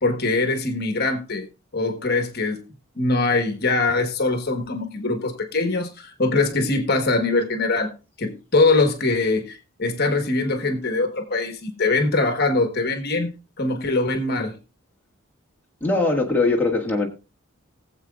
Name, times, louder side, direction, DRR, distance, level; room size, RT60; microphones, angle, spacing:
voice 1, 0.0-1.5 1.7-2.6 2.9-7.9 8.2-14.6, left 3 dB, 50° left, 1.3 m, -22 dB
voice 2, 15.8-17.1, left 3 dB, 10° left, 1.7 m, -21 dB
20.0 x 7.7 x 2.4 m
head